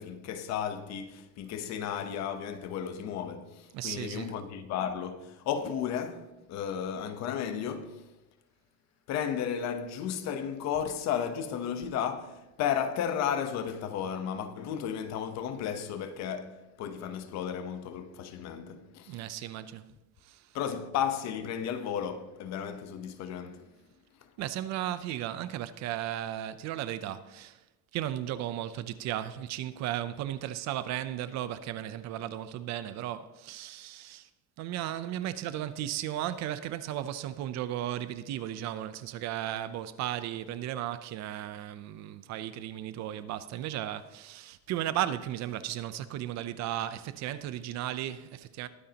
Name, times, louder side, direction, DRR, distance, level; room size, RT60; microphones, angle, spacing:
voice 1, 0.0-8.1 9.1-19.2 20.5-23.7 24.2-24.3, left 8 dB, 50° left, 1.0 m, -34 dB
voice 2, 3.7-4.3 19.1-19.9 20.2-20.5 24.4-27.6 27.9-34.3 34.6-48.7, right 12 dB, 50° right, 0.7 m, -35 dB
21.0 x 9.1 x 2.9 m
cardioid pair, 180°, 35 cm